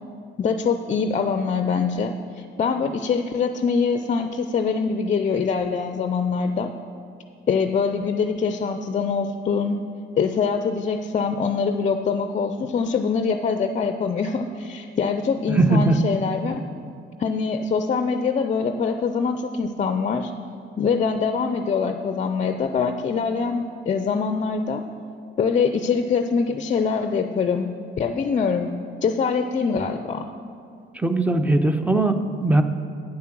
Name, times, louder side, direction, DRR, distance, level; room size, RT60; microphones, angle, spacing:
voice 1, 0.4-6.7 7.5-9.8 10.2-16.6 17.2-20.3 20.8-24.8 25.4-27.7 28.0-28.8 29.0-30.3, left 5 dB, 40° left, 8 dB, 0.4 m, -24 dB
voice 2, 15.5-16.0 31.0-32.6, right 2 dB, 5° right, 8 dB, 0.6 m, -19 dB
8.8 x 7.2 x 6.0 m, 2.4 s
cardioid pair, 90°, 20 cm